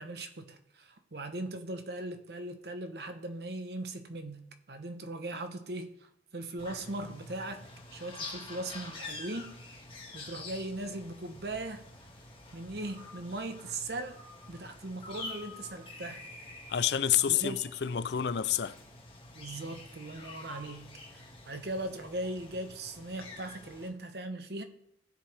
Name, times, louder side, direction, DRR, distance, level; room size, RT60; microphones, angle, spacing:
voice 1, 0.0-9.9 10.1-11.9 12.5-14.2 14.5-16.2 17.3-17.6 19.3-24.6, right 2 dB, 70° right, 1.0 m, -39 dB
sound 1, 6.6-23.9, left 2 dB, 30° left, 1.9 m, -47 dB
voice 2, 16.7-18.8, left 9 dB, 70° left, 0.5 m, -28 dB
15.5 x 7.6 x 3.4 m
head